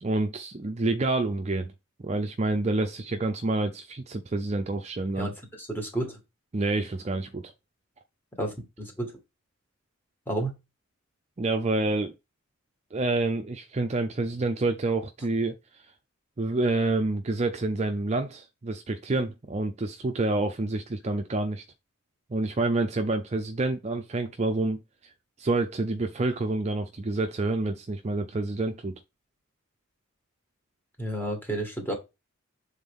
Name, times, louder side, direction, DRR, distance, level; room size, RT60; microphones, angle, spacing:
voice 1, 0.0-1.7 2.0-5.3 6.5-7.5 11.4-12.1 12.9-15.5 16.4-21.6 22.3-24.8 25.4-29.0, right 2 dB, 30° right, 0.5 m, -28 dB
voice 2, 5.6-6.2 8.4-9.2 10.3-10.5 31.0-31.9, right 1 dB, 10° left, 1.8 m, -31 dB
7.2 x 3.8 x 3.6 m
head